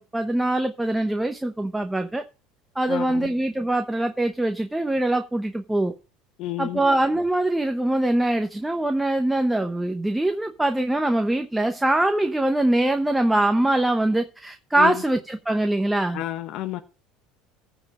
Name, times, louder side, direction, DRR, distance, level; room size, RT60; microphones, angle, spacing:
voice 1, 0.0-2.2 2.7-5.9 6.6-16.2, right 1 dB, 5° right, 0.9 m, -23 dB
voice 2, 2.9-3.3 6.4-6.8 14.8-15.0 16.1-16.8, left 15 dB, 55° left, 0.9 m, -30 dB
15.0 x 5.2 x 6.0 m
cardioid pair, 135°, 0 cm